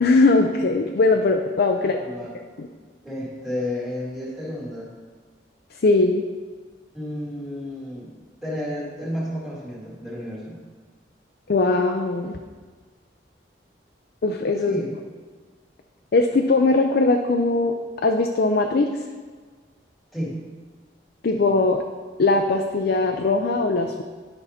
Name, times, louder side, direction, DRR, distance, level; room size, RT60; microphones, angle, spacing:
voice 1, 0.0-2.0 2.6-2.7 5.8-6.2 11.5-12.4 14.2-14.8 16.1-17.7 18.0-18.9 21.2-21.8 22.2-24.0, left 3 dB, 60° left, 4 dB, 0.5 m, -20 dB
voice 2, 1.7-2.3 3.0-4.9 6.9-8.1 8.4-10.6 14.6-14.9 20.1-20.4, left 1 dB, ahead, -5 dB, 2.2 m, -31 dB
10.5 x 5.6 x 4.3 m, 1.5 s
head